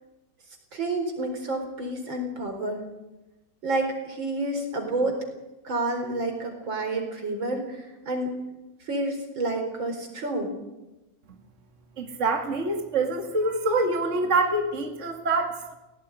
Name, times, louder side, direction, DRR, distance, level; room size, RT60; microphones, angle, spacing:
voice 1, 0.7-2.8 3.6-5.2 5.6-7.8 8.0-8.3 8.9-10.5, right 2 dB, 85° right, 4 dB, 5.0 m, -29 dB
voice 2, 12.0-15.7, right 2 dB, 40° right, 3 dB, 2.4 m, -25 dB
17.5 x 17.5 x 9.8 m, 1.0 s
omnidirectional pair, 2.0 m